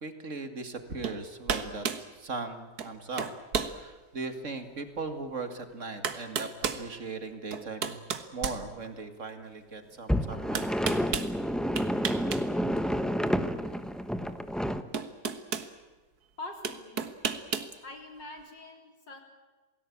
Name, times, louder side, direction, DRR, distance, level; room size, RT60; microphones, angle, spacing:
voice 1, 0.0-1.9 2.2-3.3 3.7-8.0 8.3-10.6, right 3 dB, 45° right, 7 dB, 2.5 m, -38 dB
sound 1, 1.0-1.2 1.5-2.1 2.8-2.9 3.2-3.8 4.3-4.4 5.5-5.6 6.0-6.8 7.5-9.2 10.5-11.3 11.8-12.4 12.7-12.9 14.3-14.4 14.9-15.7 16.6-17.7, right 6 dB, 60° right, 1.9 m, -32 dB
sound 2, 10.1-14.8, equal, ahead, 0.8 m, -29 dB
voice 2, 16.4-17.1 17.8-19.2, left 2 dB, 80° left, 3 dB, 4.6 m, -44 dB
28.0 x 18.5 x 8.7 m, 1.3 s
omnidirectional pair, 1.9 m